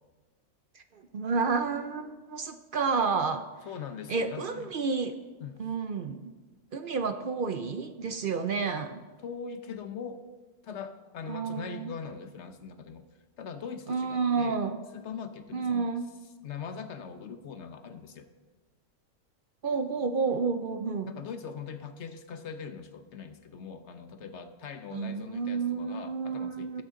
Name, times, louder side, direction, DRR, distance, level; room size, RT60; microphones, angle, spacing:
voice 1, 0.9-3.4 4.1-5.1 5.6-6.3 6.7-9.0 11.3-11.9 13.9-14.8 15.5-16.0 19.6-21.1 24.9-26.8, right 5 dB, 60° right, 8 dB, 0.5 m, -30 dB
voice 2, 3.7-4.7 5.4-5.6 9.2-10.2 10.6-13.0 13.4-14.6 14.9-15.9 16.4-18.3 21.0-26.8, left 6 dB, 55° left, 9 dB, 1.0 m, -41 dB
21.0 x 7.8 x 3.8 m, 1.3 s
omnidirectional pair, 1.6 m